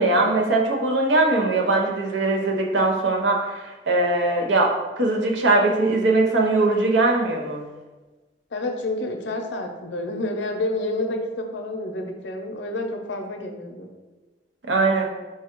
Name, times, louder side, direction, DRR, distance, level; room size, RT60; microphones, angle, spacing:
voice 1, 0.0-7.6 14.6-15.1, right 2 dB, 85° right, 0 dB, 0.7 m, -21 dB
voice 2, 8.5-13.9, left 2 dB, 85° left, 4 dB, 0.6 m, -29 dB
4.6 x 2.3 x 4.4 m, 1.2 s
head